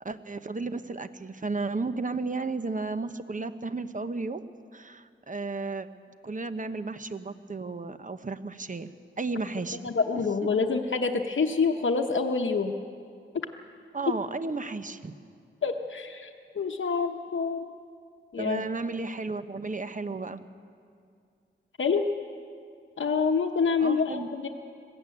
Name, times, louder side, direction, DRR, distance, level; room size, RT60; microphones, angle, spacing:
voice 1, 0.0-4.4 4.7-5.9 6.2-8.9 9.2-9.9 13.9-15.1 18.4-20.4 23.8-24.3, right 3 dB, 40° right, 10 dB, 0.9 m, -33 dB
voice 2, 9.8-12.7 15.6-16.3 16.5-17.7 18.3-18.6 21.8-22.1 23.0-24.5, left 5 dB, 70° left, 3 dB, 1.0 m, -26 dB
21.0 x 15.0 x 9.3 m, 2.3 s
wide cardioid pair, 85°, 21 cm